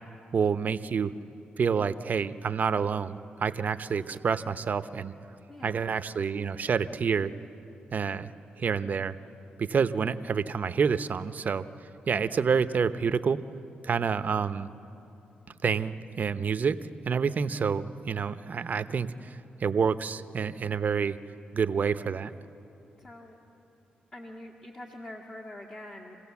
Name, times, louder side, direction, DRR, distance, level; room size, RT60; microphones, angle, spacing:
voice 1, 0.3-1.1 1.6-5.1 5.6-7.3 7.9-9.2 9.6-11.7 12.1-13.4 13.8-14.7 15.6-16.8 17.0-21.2 21.5-22.3, right 6 dB, 50° right, 12 dB, 0.7 m, -28 dB
voice 2, 5.5-6.0 23.0-23.4 24.1-26.2, left 1 dB, 35° left, -2 dB, 2.0 m, -44 dB
27.5 x 16.5 x 7.1 m, 2.9 s
cardioid pair, 70°, 4 cm